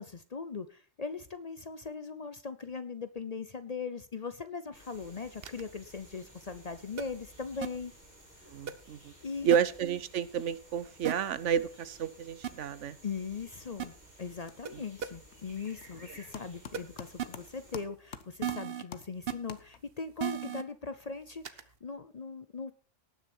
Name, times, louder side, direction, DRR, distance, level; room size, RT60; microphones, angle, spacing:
voice 1, 0.0-7.9 9.2-9.5 13.0-22.7, left 5 dB, 40° left, 12 dB, 0.7 m, -40 dB
sound 1, 4.7-17.8, equal, 35° right, 4.7 m, -56 dB
sound 2, 5.4-5.6 7.0-7.1 7.6-7.7 8.7-8.8 9.5-9.6 11.0-11.1 12.4-12.5 13.8-13.9 14.6-14.7 15.0-15.1 16.7-16.8 17.2-17.3 18.4-18.8 19.3-19.4 20.2-20.6 21.4-21.6, right 9 dB, 55° right, 1.0 m, -34 dB
voice 2, 8.5-9.1 9.4-13.0 14.7-14.8, right 8 dB, 80° right, 16 dB, 1.1 m, -30 dB
sound 3, 13.6-14.0 14.2-20.1, left 7 dB, 65° left, 1.1 m, -49 dB
18.5 x 6.5 x 4.4 m, 0.38 s
omnidirectional pair, 1.3 m